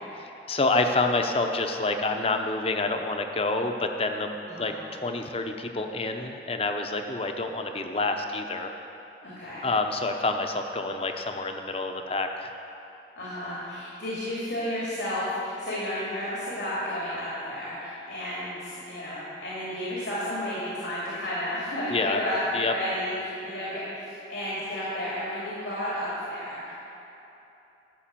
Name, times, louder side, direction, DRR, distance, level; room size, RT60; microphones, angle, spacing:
voice 1, 0.2-4.7 5.0-8.7 9.6-12.5 21.9-22.2 22.5-22.7, left 3 dB, 35° left, 5 dB, 0.7 m, -28 dB
voice 2, 9.2-9.6 13.2-26.7, left 1 dB, 90° left, -8 dB, 2.6 m, -32 dB
13.0 x 6.0 x 7.5 m, 3.0 s
head